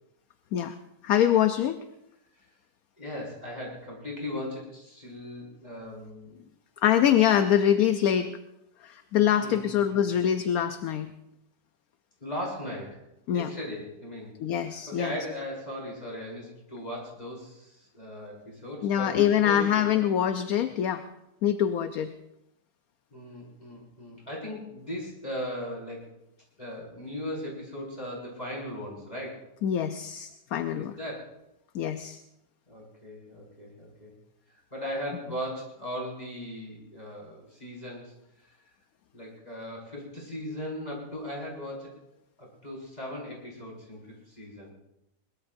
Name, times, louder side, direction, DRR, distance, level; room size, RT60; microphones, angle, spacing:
voice 1, 1.0-1.8 6.8-8.3 8.8-11.1 13.3-13.5 14.4-15.1 18.8-21.0 21.4-22.1 29.6-30.9 31.7-32.2, left 10 dB, 65° left, 9 dB, 1.0 m, -24 dB
voice 2, 3.0-6.4 7.0-7.1 7.6-7.7 9.4-10.1 12.2-13.0 13.3-14.3 14.6-20.1 23.1-26.1 26.6-29.4 30.7-31.4 32.7-34.1 34.7-38.1 39.1-41.9 42.4-44.0 44.3-44.7, left 1 dB, 20° left, -4 dB, 5.5 m, -38 dB
22.0 x 21.0 x 2.6 m, 0.86 s
omnidirectional pair, 1.9 m